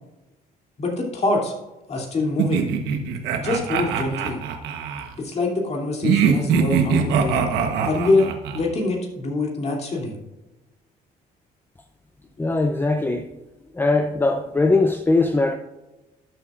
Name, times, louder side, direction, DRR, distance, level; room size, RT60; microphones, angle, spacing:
voice 1, 0.8-1.5 1.9-2.7 3.4-4.4 5.2-7.4 7.8-10.2, left 2 dB, 40° left, -1 dB, 2.9 m, -24 dB
sound 1, 2.4-5.1 6.0-8.6, right 7 dB, 90° right, 1.1 m, -22 dB
voice 2, 12.4-13.3 13.7-15.6, left 3 dB, 10° left, 6 dB, 0.5 m, -20 dB
12.5 x 8.0 x 2.5 m, 1.0 s
cardioid pair, 110°, 17 cm